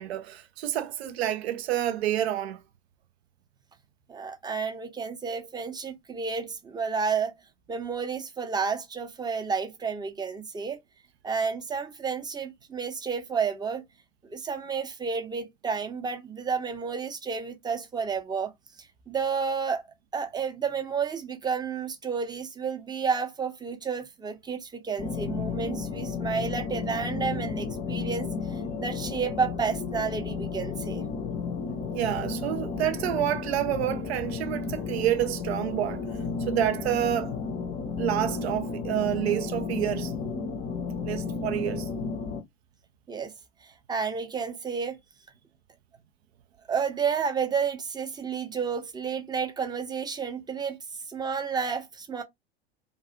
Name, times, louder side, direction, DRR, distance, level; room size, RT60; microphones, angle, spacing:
voice 1, 0.0-2.6 31.9-36.1 36.4-37.3 38.0-40.1 41.0-41.9, right 12 dB, 80° right, 0.5 m, -28 dB
voice 2, 4.1-7.3 7.7-10.8 11.2-13.8 14.3-18.5 19.1-19.8 20.1-31.1 43.1-43.3 43.6-45.0 46.7-50.8 51.1-52.2, right 5 dB, 15° right, 0.6 m, -31 dB
sound 1, 25.0-42.4, left 5 dB, 30° left, 0.5 m, -33 dB
2.4 x 2.3 x 2.7 m
hypercardioid pair, 90°, 31 cm